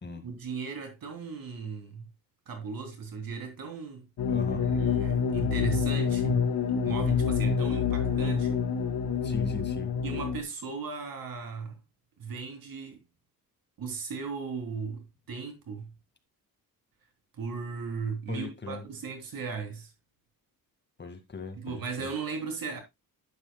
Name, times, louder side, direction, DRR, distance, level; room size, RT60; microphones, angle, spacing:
voice 1, 0.2-2.0 2.5-4.1 4.5-6.4 6.8-8.7 10.0-11.8 12.2-13.0 13.8-15.9 17.4-19.9 21.5-22.8, right 5 dB, 70° right, 3.2 m, -37 dB
sound 1, 4.2-10.4, left 6 dB, 70° left, 1.8 m, -27 dB
voice 2, 4.3-4.7 9.2-9.9 18.3-18.8 21.0-22.1, left 3 dB, 30° left, 1.9 m, -39 dB
11.5 x 8.5 x 2.3 m
wide cardioid pair, 140°, 36 cm